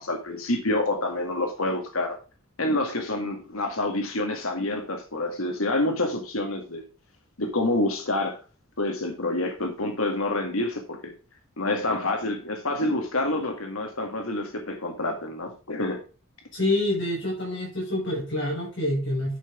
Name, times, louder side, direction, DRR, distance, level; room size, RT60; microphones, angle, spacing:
voice 1, 0.0-2.2 2.6-6.8 7.4-8.4 8.8-11.1 11.6-16.0, left 2 dB, 80° left, 4 dB, 2.1 m, -27 dB
voice 2, 16.5-19.4, left 1 dB, 55° left, -4 dB, 6.1 m, -27 dB
11.0 x 6.0 x 5.0 m, 0.35 s
head